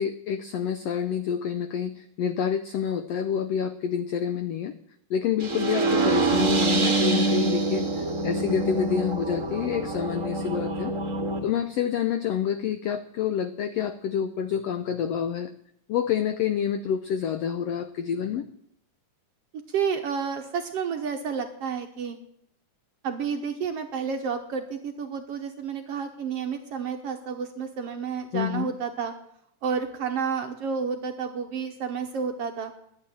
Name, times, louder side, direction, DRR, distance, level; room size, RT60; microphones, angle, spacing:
voice 1, 0.0-4.7 5.1-10.9 11.4-15.5 15.9-18.5 28.3-28.7, left 8 dB, 90° left, 10 dB, 1.4 m, -28 dB
sound 1, 5.4-11.4, right 2 dB, 30° right, 1.8 m, -25 dB
voice 2, 19.7-22.2 23.0-29.1 29.6-32.7, right 6 dB, 65° right, 6 dB, 1.6 m, -30 dB
11.5 x 8.8 x 10.0 m, 0.72 s
omnidirectional pair, 3.8 m